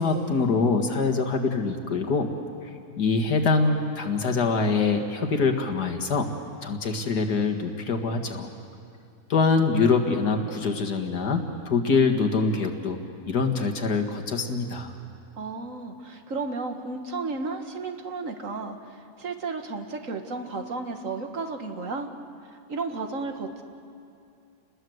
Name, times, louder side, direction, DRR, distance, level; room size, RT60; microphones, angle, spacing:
voice 1, 0.0-2.3 3.0-6.3 6.6-8.5 9.3-13.0 13.3-14.9, left 4 dB, 80° left, 4 dB, 2.4 m, -24 dB
voice 2, 15.4-22.1 22.5-23.6, right 3 dB, 55° right, 6 dB, 1.9 m, -33 dB
30.0 x 20.5 x 7.9 m, 2.5 s
omnidirectional pair, 1.7 m